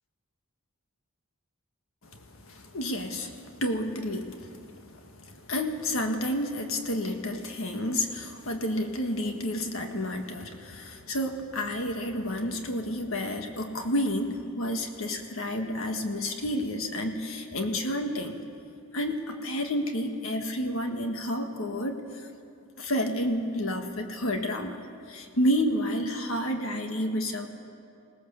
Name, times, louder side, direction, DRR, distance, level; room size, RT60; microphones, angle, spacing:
voice 1, 2.5-4.6 4.9-18.4 18.9-22.0 22.8-24.8 25.1-27.5, equal, 65° left, 4 dB, 1.7 m, -30 dB
21.0 x 18.0 x 7.1 m, 2.6 s
head